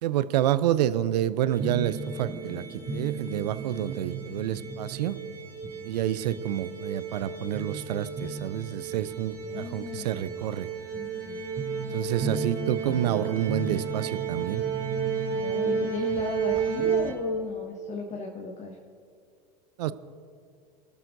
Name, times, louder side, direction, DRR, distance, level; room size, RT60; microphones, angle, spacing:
voice 1, 0.0-2.6 2.9-5.2 5.8-10.7 11.9-14.6 19.8-19.9, right 12 dB, 75° right, 15 dB, 0.6 m, -28 dB
sound 1, 1.5-17.1, right 6 dB, 45° right, 3.3 m, -32 dB
voice 2, 9.4-10.3 10.9-11.4 15.4-18.8, left 4 dB, 35° left, -1 dB, 1.5 m, -36 dB
27.0 x 12.5 x 2.7 m, 2.3 s
hypercardioid pair, 90°, 21 cm